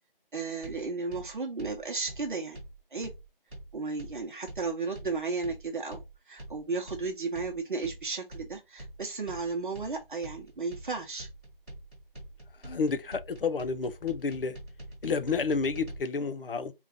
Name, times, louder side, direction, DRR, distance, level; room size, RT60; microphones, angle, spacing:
voice 1, 0.3-2.6 2.9-3.1 3.7-11.3, right 4 dB, 60° right, 0.8 m, -34 dB
sound 1, 0.6-16.0, right 1 dB, ahead, 1.0 m, -45 dB
voice 2, 12.6-14.6 15.0-16.7, left 4 dB, 70° left, 0.6 m, -30 dB
3.9 x 2.4 x 3.5 m
figure-of-eight pair, 175°, 29 cm